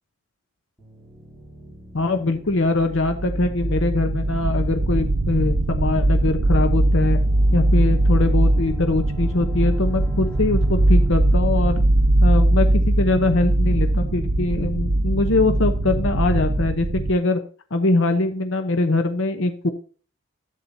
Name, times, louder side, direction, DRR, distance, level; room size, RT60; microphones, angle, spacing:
sound 1, 0.8-12.4, right 1 dB, ahead, 5.2 m, -44 dB
voice 1, 1.9-7.2 7.5-11.8 12.2-17.4 17.7-19.7, left 2 dB, 65° left, 7 dB, 0.9 m, -22 dB
sound 2, 2.8-17.1, right 1 dB, 70° right, 0.8 m, -20 dB
11.0 x 8.4 x 2.7 m, 0.39 s
head